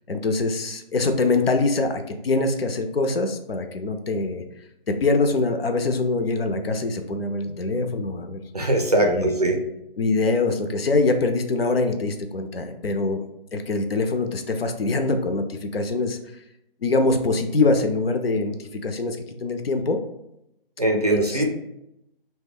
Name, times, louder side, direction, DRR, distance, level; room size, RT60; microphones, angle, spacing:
voice 1, 0.1-4.4 4.9-8.4 9.0-9.3 10.0-13.2 13.5-16.2 16.8-18.6 18.8-20.0 21.1-21.4, left 3 dB, 75° left, 7 dB, 0.5 m, -24 dB
voice 2, 8.5-9.6 20.8-21.5, right 1 dB, 40° right, 2 dB, 0.4 m, -21 dB
2.9 x 2.2 x 3.4 m, 0.82 s
figure-of-eight pair, 165°, 30 cm